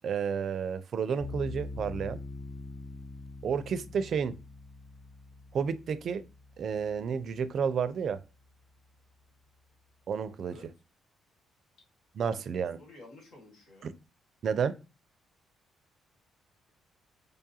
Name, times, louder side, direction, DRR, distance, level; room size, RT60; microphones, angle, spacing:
voice 1, 0.0-2.2 3.4-4.3 5.5-6.2 6.6-8.2 10.1-10.5 12.2-12.8 13.8-13.9 14.4-14.8, right 6 dB, 60° right, 0.4 m, -31 dB
sound 1, 1.2-8.3, left 3 dB, 10° left, 0.7 m, -44 dB
voice 2, 12.2-13.9, left 2 dB, 75° left, 1.8 m, -53 dB
5.1 x 2.3 x 2.7 m
cardioid pair, 90°, 0 cm